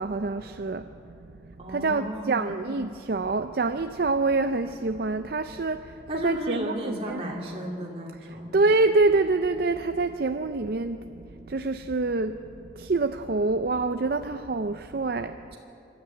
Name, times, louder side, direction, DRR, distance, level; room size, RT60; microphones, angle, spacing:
voice 1, 0.0-7.2 8.2-15.4, right 3 dB, 55° right, 0.5 m, -26 dB
voice 2, 1.6-2.5 6.1-8.6, right 1 dB, 30° right, 2.9 m, -33 dB
25.0 x 13.0 x 9.5 m
head